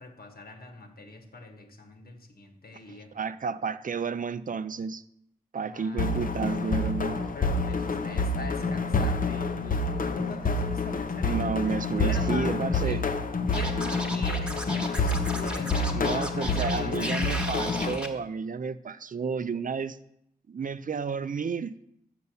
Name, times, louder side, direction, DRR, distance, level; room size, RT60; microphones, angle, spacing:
voice 1, 0.0-3.1 5.6-6.2 6.9-11.6 11.9-12.5 12.8-13.0 13.4-17.6, left 3 dB, 80° left, 4 dB, 1.4 m, -41 dB
voice 2, 2.9-5.0 5.5-7.2 11.2-13.0 15.4-15.5 15.9-20.0 20.5-21.8, right 5 dB, 60° right, 14 dB, 0.4 m, -31 dB
sound 1, 6.0-18.0, left 3 dB, 65° left, 0.6 m, -28 dB
Scratching (performance technique), 13.5-18.1, right 1 dB, 5° right, 1.2 m, -35 dB
7.0 x 6.8 x 6.8 m, 0.77 s
wide cardioid pair, 95°, 15 cm